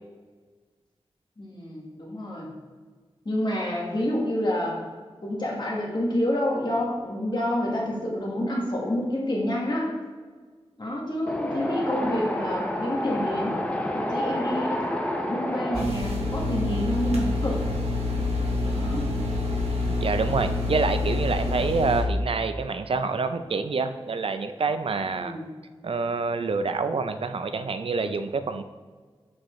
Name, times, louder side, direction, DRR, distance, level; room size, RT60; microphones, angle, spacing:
voice 1, 1.4-2.5 3.2-4.8 5.2-9.9 10.8-13.6 13.9-14.8 15.1-17.6 18.7-19.1 25.1-25.5, left 1 dB, 45° left, -3 dB, 1.5 m, -28 dB
Wind, 11.3-15.8, left 1 dB, 10° left, 0.7 m, -29 dB
sound 1, 15.7-22.0, left 2 dB, 85° right, 1.1 m, -27 dB
voice 2, 20.0-25.4 25.8-28.6, right 4 dB, 65° right, 10 dB, 0.4 m, -27 dB
7.3 x 4.6 x 3.1 m, 1.5 s
wide cardioid pair, 80°, 10 cm